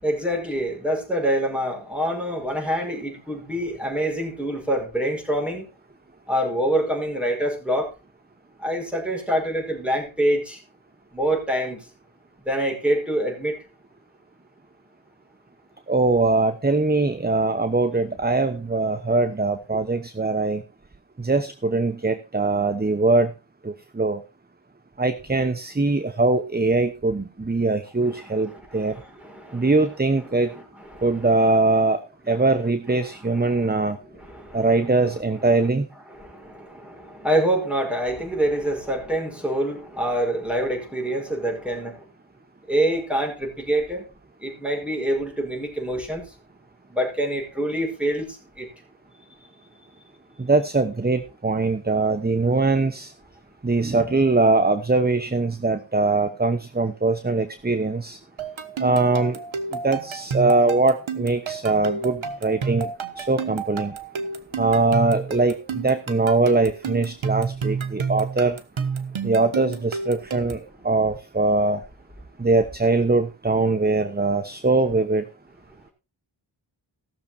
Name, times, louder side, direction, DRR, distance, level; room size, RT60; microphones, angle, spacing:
voice 1, 0.0-5.7 6.3-7.9 8.6-10.6 11.1-11.8 12.4-13.6 28.0-29.7 30.9-31.3 33.4-33.7 34.1-34.7 36.1-42.0 42.7-44.0 44.4-46.3 46.9-48.7, right 1 dB, ahead, 5.1 m, -26 dB
voice 2, 15.9-20.6 21.2-23.3 23.6-24.2 25.0-28.9 29.5-30.5 31.0-32.0 32.3-34.0 34.5-35.9 50.4-53.1 53.6-58.2 58.8-59.4 59.8-62.9 63.2-63.9 64.6-68.6 69.2-71.8 72.4-75.2, right 3 dB, 20° right, 1.0 m, -22 dB
sound 1, 58.4-70.7, right 5 dB, 80° right, 1.3 m, -30 dB
16.5 x 6.8 x 4.3 m
wide cardioid pair, 45°, 46 cm